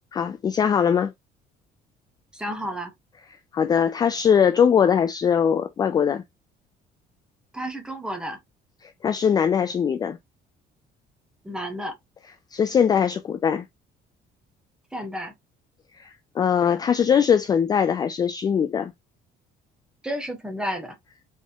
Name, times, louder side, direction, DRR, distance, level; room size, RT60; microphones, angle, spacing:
voice 1, 0.1-1.1 3.5-6.2 8.8-10.2 12.5-13.7 16.0-18.9, left 7 dB, 25° left, 0.3 m, -21 dB
voice 2, 2.3-2.9 7.5-8.4 11.4-12.0 14.9-15.3 20.0-21.0, equal, 5° right, 1.1 m, -31 dB
4.2 x 3.6 x 2.7 m
cardioid pair, 165°, 17 cm